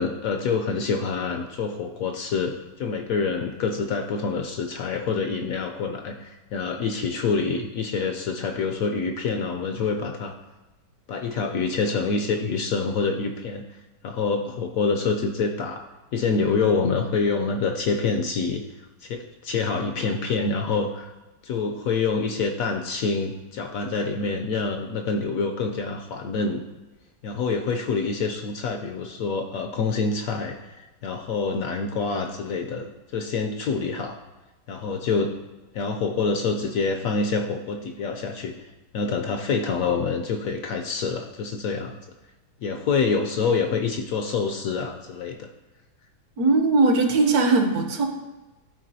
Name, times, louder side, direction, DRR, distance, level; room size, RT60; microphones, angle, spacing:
voice 1, 0.0-10.3 11.1-15.8 16.1-18.6 19.0-21.1 21.4-26.6 27.2-34.2 34.7-35.3 35.7-42.0 42.6-45.5, left 4 dB, 70° left, 4 dB, 0.8 m, -26 dB
voice 2, 46.4-48.1, right 3 dB, 70° right, 5 dB, 1.2 m, -19 dB
11.5 x 4.5 x 2.7 m, 1.1 s
omnidirectional pair, 1.8 m